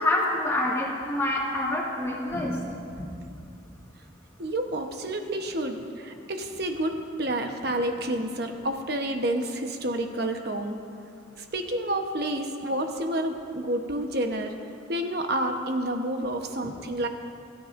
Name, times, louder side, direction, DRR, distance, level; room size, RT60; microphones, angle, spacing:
voice 1, 0.0-2.6, left 1 dB, 15° left, -4 dB, 1.9 m, -26 dB
voice 2, 4.4-10.8 11.4-14.5 14.9-17.1, right 1 dB, 55° right, 4 dB, 1.0 m, -29 dB
22.0 x 11.5 x 2.6 m, 2.5 s
head